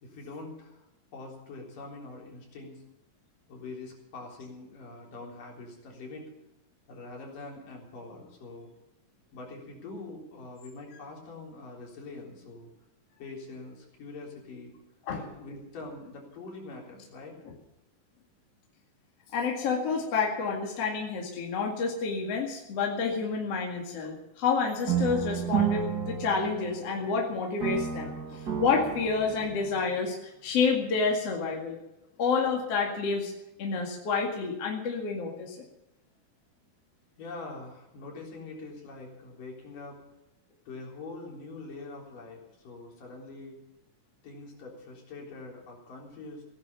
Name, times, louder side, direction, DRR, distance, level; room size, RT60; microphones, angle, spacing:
voice 1, 0.0-0.9 1.1-2.8 3.5-6.3 6.9-8.7 9.3-12.7 13.2-14.7 15.2-17.4 37.2-40.0 40.7-43.5 44.2-46.5, left 3 dB, 65° left, -1 dB, 5.4 m, -44 dB
voice 2, 19.3-31.8 32.2-33.3 33.6-35.6, left 5 dB, 45° left, 0 dB, 2.9 m, -29 dB
sound 1, 24.9-27.2 27.6-29.9, right 7 dB, 35° right, 1.9 m, -31 dB
17.0 x 10.5 x 6.9 m, 0.92 s
omnidirectional pair, 4.2 m